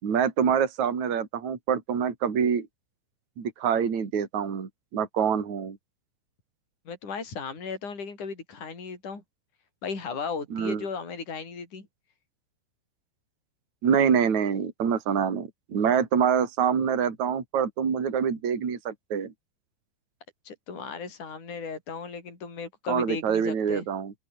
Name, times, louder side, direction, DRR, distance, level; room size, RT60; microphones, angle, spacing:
voice 1, 0.0-2.7 3.4-5.8 10.5-10.8 13.8-19.3 22.9-24.1, right 7 dB, 40° right, 4.6 m, -26 dB
voice 2, 6.9-9.2 9.8-11.9 20.4-23.9, left 5 dB, 35° left, 8.0 m, -36 dB
open air
omnidirectional pair, 5.9 m